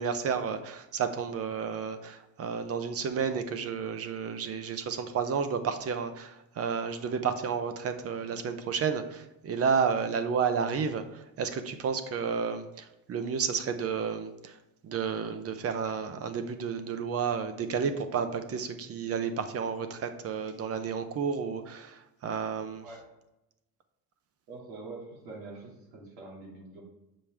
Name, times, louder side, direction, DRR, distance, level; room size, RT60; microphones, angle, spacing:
voice 1, 0.0-14.6 14.8-22.8, right 6 dB, 40° right, 9 dB, 0.7 m, -31 dB
voice 2, 24.5-26.8, right 3 dB, 80° right, -2 dB, 2.3 m, -45 dB
7.2 x 5.2 x 3.4 m, 0.92 s
cardioid pair, 135°, 37 cm